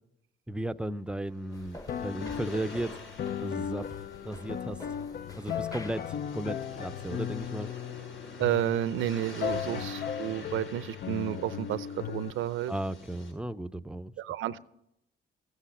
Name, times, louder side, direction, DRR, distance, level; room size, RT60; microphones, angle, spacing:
voice 1, 0.5-2.9 3.4-3.9 4.2-4.8 5.4-7.7 9.6-9.9 12.7-14.1, right 1 dB, 5° right, 0.6 m, -35 dB
sound 1, 1.1-13.3, left 2 dB, 75° left, 6.6 m, -49 dB
sound 2, 1.5-7.5, left 1 dB, 20° left, 1.0 m, -49 dB
sound 3, 1.9-12.3, left 9 dB, 50° left, 0.5 m, -37 dB
voice 2, 8.4-12.7 14.2-14.6, right 12 dB, 80° right, 0.6 m, -31 dB
14.5 x 8.2 x 9.9 m
cardioid pair, 90°, 20 cm